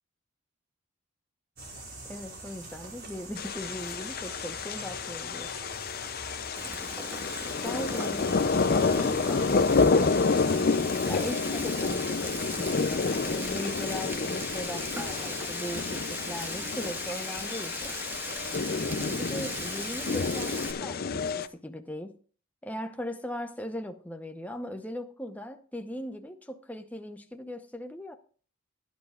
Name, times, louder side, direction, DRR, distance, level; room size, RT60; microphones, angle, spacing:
sound 1, 1.6-9.9, right 2 dB, 45° right, 5.0 m, -45 dB
voice 1, 2.0-5.5 7.6-8.4 8.7-18.0 18.8-22.2 22.6-28.1, left 1 dB, 5° left, 0.8 m, -39 dB
sound 2, 3.4-21.5, left 4 dB, 40° left, 0.5 m, -29 dB
Frying (food), 6.6-20.7, right 1 dB, 10° right, 1.4 m, -39 dB
17.0 x 10.5 x 2.4 m
head